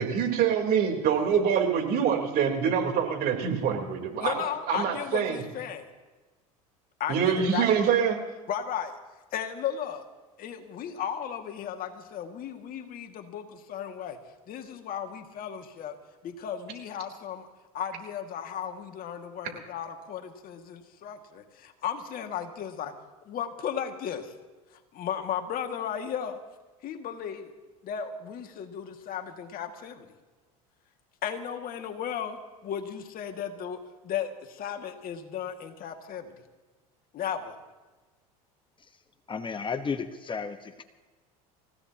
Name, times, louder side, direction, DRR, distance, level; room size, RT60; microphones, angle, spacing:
voice 1, 0.0-4.3 4.7-5.4 7.1-8.2, right 7 dB, 55° right, 3 dB, 3.8 m, -25 dB
voice 2, 4.2-5.9 7.0-7.7 8.5-9.0 9.3-10.0 10.4-14.2 14.5-16.0 16.2-17.5 17.7-22.9 23.2-24.3 24.9-26.4 26.8-27.5 27.8-30.1 31.2-36.3 37.1-37.6, left 8 dB, 50° left, 5 dB, 2.1 m, -35 dB
voice 3, 39.3-40.8, left 5 dB, 25° left, 9 dB, 1.2 m, -33 dB
28.5 x 16.5 x 2.9 m, 1.2 s
hypercardioid pair, 85°, 19 cm